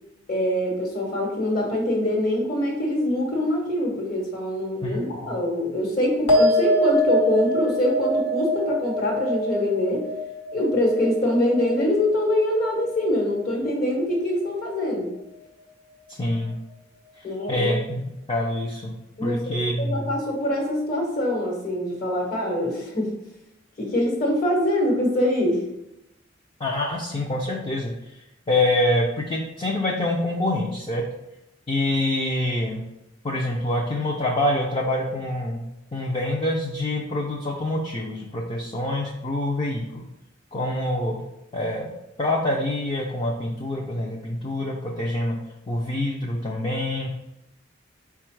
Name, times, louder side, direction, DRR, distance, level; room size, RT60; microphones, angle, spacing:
voice 1, 0.3-10.1 10.5-15.1 17.2-17.7 19.2-23.2 23.8-25.6, left 1 dB, 50° left, -2 dB, 1.2 m, -24 dB
sound 1, 6.3-13.0 13.3-13.9, equal, 70° left, 1.3 m, -25 dB
voice 2, 16.2-16.6 17.5-18.9 19.2-20.1 26.6-28.2 28.5-31.0 31.7-32.8 33.2-35.6 35.9-40.1 40.5-41.2 41.5-41.9 42.2-45.4 45.7-47.1, left 1 dB, 30° left, -3 dB, 0.5 m, -26 dB
4.5 x 2.4 x 4.5 m, 0.89 s
head